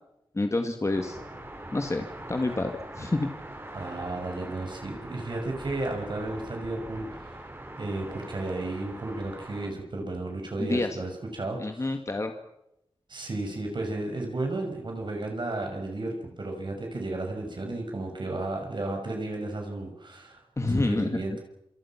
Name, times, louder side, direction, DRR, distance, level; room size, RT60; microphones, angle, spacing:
voice 1, 0.3-1.2 1.7-3.3 10.6-11.0 11.6-12.3 20.6-21.2, left 2 dB, 30° left, 5 dB, 2.1 m, -28 dB
sound 1, 0.9-9.7, right 1 dB, 25° right, 5.8 m, -42 dB
voice 2, 3.7-7.4 7.8-11.9 13.1-21.4, right 2 dB, 55° right, 2 dB, 6.1 m, -33 dB
27.5 x 27.5 x 6.0 m, 0.83 s
wide cardioid pair, 110°, 9 cm